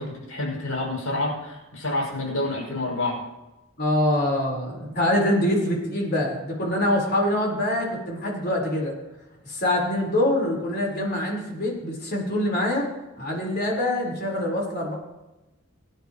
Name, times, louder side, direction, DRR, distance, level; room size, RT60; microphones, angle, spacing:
voice 1, 0.0-3.3, left 2 dB, 80° left, -2 dB, 5.8 m, -28 dB
voice 2, 3.8-8.9 9.4-12.8 13.2-14.9, left 1 dB, 50° left, -2 dB, 4.2 m, -24 dB
24.5 x 10.5 x 3.0 m, 1.0 s
head